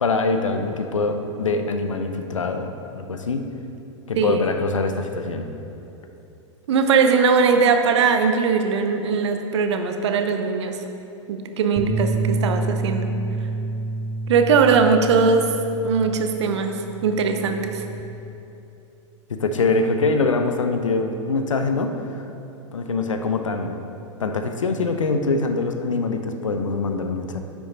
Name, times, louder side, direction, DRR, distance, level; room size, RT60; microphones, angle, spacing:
voice 1, 0.0-2.7 2.9-3.4 4.1-5.5 19.3-22.2 22.7-23.8 24.2-27.4, left 3 dB, 80° left, 6 dB, 0.7 m, -24 dB
voice 2, 4.2-4.5 6.7-10.8 11.3-13.1 14.3-15.5 15.8-16.8 17.0-17.9, right 5 dB, 60° right, 6 dB, 0.8 m, -20 dB
Bass guitar, 11.8-18.0, right 2 dB, 10° right, 1.0 m, -28 dB
9.8 x 6.0 x 3.9 m, 2.9 s
figure-of-eight pair, 100°, 16 cm